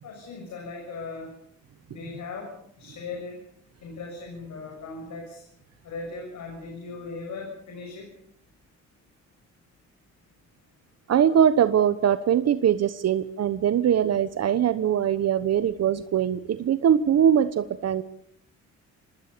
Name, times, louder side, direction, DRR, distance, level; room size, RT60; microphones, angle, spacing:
voice 1, 0.0-1.3 1.9-3.4 3.8-5.4 5.8-8.1, left 3 dB, 70° left, 2 dB, 6.8 m, -38 dB
voice 2, 11.1-18.0, right 9 dB, 55° right, 12 dB, 1.1 m, -22 dB
25.5 x 20.0 x 6.9 m, 0.70 s
cardioid pair, 90°, 30 cm